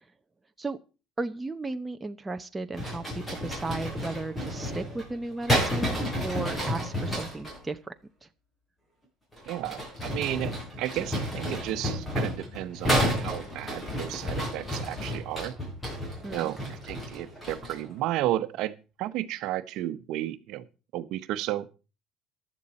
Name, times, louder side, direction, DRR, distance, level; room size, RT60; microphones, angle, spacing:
voice 1, 1.2-7.9 16.2-16.5, right 2 dB, 10° right, 7 dB, 0.8 m, -35 dB
sound 1, 2.7-7.6 9.3-17.9, equal, 15° left, 6.7 m, -31 dB
voice 2, 9.5-15.5 16.3-18.7 19.0-20.7 20.9-21.7, right 14 dB, 65° right, 12 dB, 1.1 m, -33 dB
15.0 x 11.0 x 4.3 m, 0.34 s
cardioid pair, 140°, 0 cm